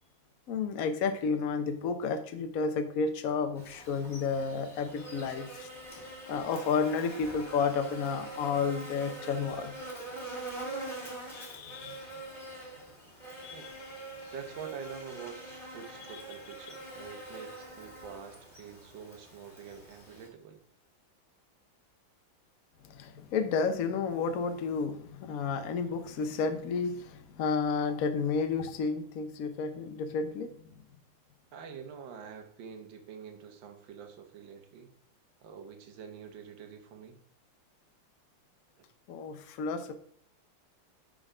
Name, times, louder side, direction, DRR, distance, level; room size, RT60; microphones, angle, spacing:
voice 1, 0.5-5.7 6.0-9.7 11.3-12.1 13.4-13.7 16.1-16.2 22.8-30.8 39.1-39.9, left 5 dB, 55° left, 8 dB, 1.0 m, -31 dB
Buzz, 3.6-20.3, right 2 dB, 15° left, 2.3 m, -44 dB
voice 2, 14.3-20.6 31.5-34.9 35.4-37.2 38.8-38.9, right 7 dB, 65° right, 5 dB, 1.8 m, -46 dB
9.9 x 4.0 x 5.0 m, 0.62 s
omnidirectional pair, 2.3 m